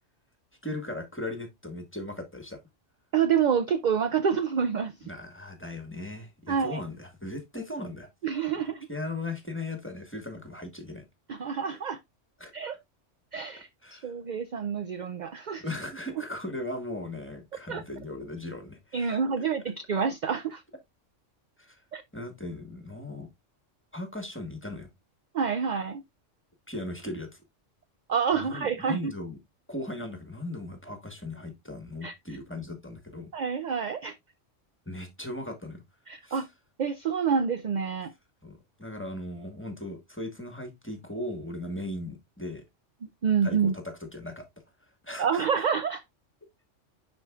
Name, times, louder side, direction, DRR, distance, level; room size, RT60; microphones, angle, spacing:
voice 1, 0.6-2.6 5.0-8.1 8.9-11.0 12.4-12.5 13.8-14.1 15.6-19.2 21.6-21.8 22.1-23.3 23.9-24.9 26.7-27.4 28.3-29.4 29.7-33.3 34.9-35.8 36.2-36.4 38.4-42.6 43.4-44.4 44.8-45.4, left 1 dB, 10° left, 1.3 m, -38 dB
voice 2, 3.1-4.9 6.5-6.8 8.2-8.9 11.3-12.0 12.5-12.8 13.3-15.6 17.7-17.8 18.9-20.6 21.9-22.0 25.3-26.0 28.1-29.1 32.0-32.1 33.3-34.1 36.1-36.5 36.8-38.1 43.2-43.7 45.2-46.0, right 6 dB, 55° right, 0.5 m, -27 dB
10.5 x 4.5 x 2.3 m
omnidirectional pair, 1.3 m